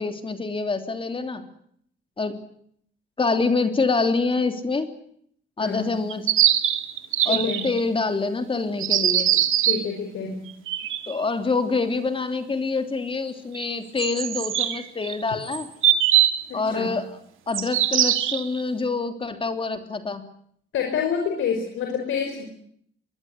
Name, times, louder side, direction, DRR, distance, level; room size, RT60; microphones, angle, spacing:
voice 1, 0.0-1.4 2.2-2.4 3.2-4.9 5.6-6.3 7.2-9.3 11.1-15.7 16.5-17.0 17.5-20.2, left 3 dB, 25° left, 8 dB, 3.2 m, -26 dB
voice 2, 5.6-6.0 7.2-7.7 9.6-10.4 16.5-16.9 20.7-22.4, left 6 dB, 85° left, 2 dB, 5.6 m, -28 dB
sound 1, 6.1-7.8 8.8-9.9 10.5-11.1 13.5-13.6 14.0-16.4 17.5-18.6, right 11 dB, 85° right, 2.4 m, -22 dB
23.5 x 23.0 x 8.1 m, 0.67 s
cardioid pair, 130°, 20 cm